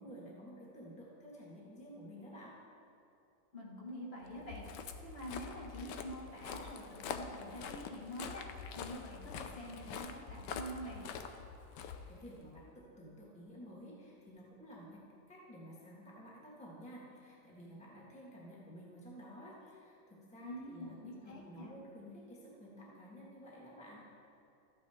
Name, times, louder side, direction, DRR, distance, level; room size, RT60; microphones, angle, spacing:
voice 1, 0.0-2.5 11.8-15.0 15.3-24.0, equal, 5° left, -6 dB, 1.5 m, -52 dB
voice 2, 3.5-8.4 8.7-11.1 20.4-21.7, equal, 35° left, -4 dB, 1.9 m, -46 dB
Walk footsteps, 4.3-12.6, left 6 dB, 85° left, 1.3 m, -45 dB
13.5 x 8.9 x 3.6 m, 2.6 s
omnidirectional pair, 1.8 m